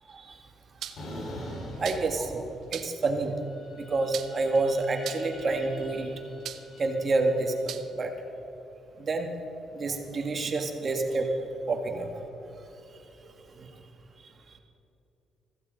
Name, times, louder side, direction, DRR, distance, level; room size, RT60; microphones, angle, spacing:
voice 1, 0.1-0.4 1.8-2.4 2.7-3.3 3.8-6.1 6.8-8.1 9.0-9.3 9.7-11.4 11.7-12.1 12.6-12.7 13.2-13.7, right 3 dB, 40° right, 4 dB, 1.9 m, -28 dB
sound 1, 0.8-1.1 1.8-2.2 2.7-3.0 4.1-4.6 5.0-5.4 6.4-6.8 7.7-7.9, right 10 dB, 75° right, 0.7 m, -38 dB
sound 2, 1.0-2.9 3.2-7.6, equal, 65° left, 4.3 m, -44 dB
15.0 x 15.0 x 5.3 m, 2.9 s
cardioid pair, 90°, 0 cm